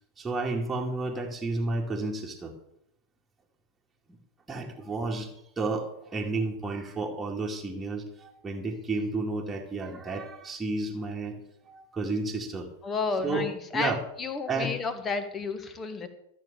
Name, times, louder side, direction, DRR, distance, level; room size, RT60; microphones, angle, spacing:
voice 1, 0.2-2.5 4.5-5.3 5.6-11.4 11.7-12.7 13.2-13.5 13.7-14.0 14.5-14.8, right 3 dB, 10° right, -1 dB, 2.1 m, -31 dB
voice 2, 12.8-13.9 14.2-16.1, left 4 dB, 20° left, 10 dB, 1.6 m, -31 dB
13.5 x 7.0 x 6.8 m, 0.77 s
figure-of-eight pair, 90°, 0 cm